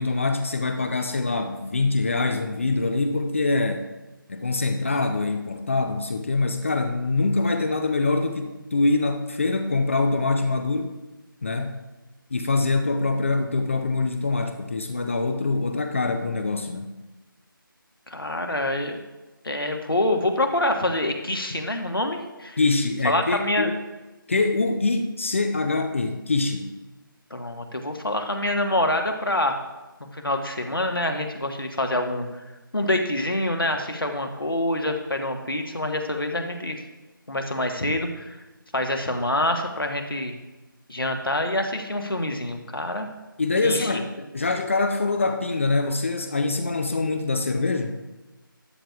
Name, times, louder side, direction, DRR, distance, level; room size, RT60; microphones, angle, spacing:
voice 1, 0.0-3.8 4.3-10.9 11.4-11.8 12.3-16.9 22.6-23.8 24.3-26.7 43.4-48.0, left 3 dB, 35° left, 6 dB, 0.6 m, -24 dB
voice 2, 18.1-19.0 19.4-22.6 23.0-23.7 27.3-29.6 30.1-32.3 32.7-36.8 37.3-38.2 38.7-40.4 40.9-43.1 43.6-43.9, left 1 dB, 75° left, 4 dB, 1.3 m, -26 dB
13.0 x 9.0 x 2.4 m, 1.1 s
figure-of-eight pair, 155°, 12 cm